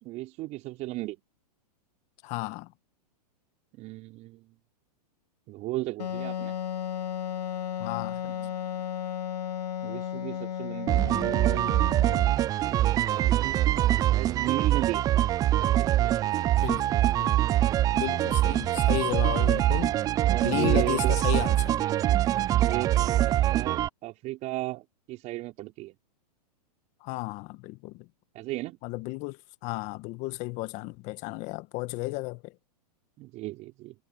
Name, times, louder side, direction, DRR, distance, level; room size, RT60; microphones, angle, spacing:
voice 1, 0.0-1.2 3.8-4.5 5.5-6.5 8.3-8.5 9.8-11.7 12.6-15.1 15.8-16.3 18.4-18.6 20.2-21.1 22.6-26.0 28.3-28.8 33.2-33.9, right 18 dB, 35° right, 4.7 m, -35 dB
voice 2, 2.2-2.7 7.8-8.2 16.6-16.9 17.2-17.5 17.9-20.0 20.4-21.8 27.0-28.1 28.8-32.5, left 22 dB, 35° left, 1.3 m, -33 dB
Wind instrument woodwind instrument, 6.0-12.4, left 10 dB, 85° left, 1.7 m, -34 dB
sound 1, 10.9-23.9, right 13 dB, 15° right, 0.4 m, -24 dB
hypercardioid pair, 135°, 21 cm